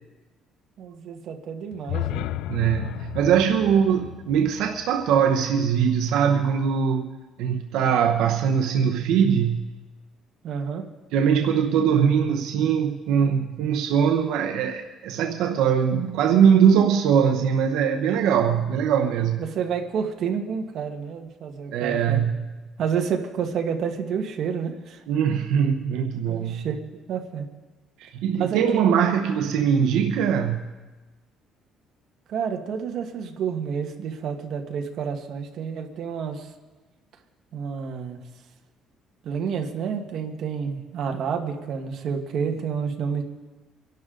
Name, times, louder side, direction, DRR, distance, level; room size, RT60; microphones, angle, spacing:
voice 1, 0.8-2.3 10.4-10.9 19.4-22.2 22.8-25.0 26.3-26.8 27.1-27.4 28.3-28.9 32.3-36.5 37.5-38.2 39.2-43.2, right 7 dB, 55° right, 3 dB, 1.5 m, -29 dB
sound 1, 1.7-5.8, left 13 dB, 90° left, 0.4 m, -34 dB
voice 2, 2.5-9.7 11.1-19.4 21.7-22.5 25.1-26.7 28.0-30.7, right 7 dB, 80° right, 4 dB, 0.9 m, -21 dB
25.5 x 11.5 x 3.9 m, 1.2 s
cardioid pair, 155°, 0 cm